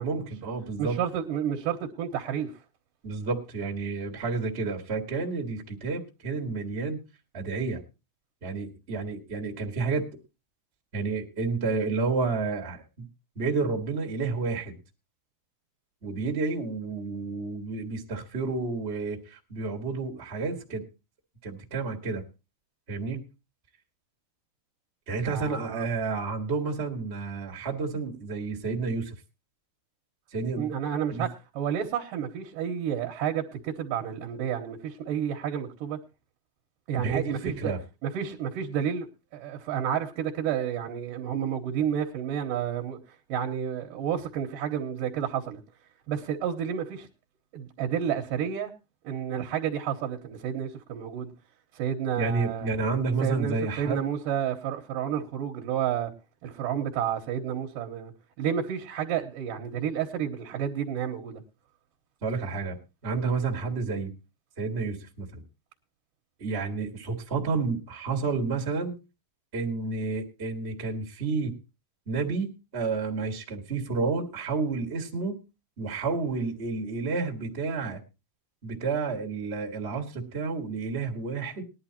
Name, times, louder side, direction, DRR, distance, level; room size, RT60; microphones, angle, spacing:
voice 1, 0.0-1.0 3.0-7.0 7.3-7.8 8.4-10.1 10.9-13.0 13.3-14.8 16.0-20.8 21.4-22.2 22.9-23.2 25.1-29.2 30.3-30.7 31.1-31.3 37.0-37.8 52.2-54.1 62.2-62.8 63.0-64.1 64.6-65.4 66.4-69.0 69.5-71.5 72.1-75.4 75.8-78.0 78.6-81.6, right 4 dB, 30° right, 1.1 m, -30 dB
voice 2, 0.8-2.5 25.2-25.9 30.5-36.0 36.9-37.7 38.0-39.1 39.3-45.6 46.1-47.1 47.5-48.7 49.0-51.3 51.7-52.7 53.2-56.1 56.4-58.1 58.4-61.4, right 9 dB, 70° right, 2.6 m, -30 dB
19.5 x 11.0 x 2.9 m
omnidirectional pair, 4.3 m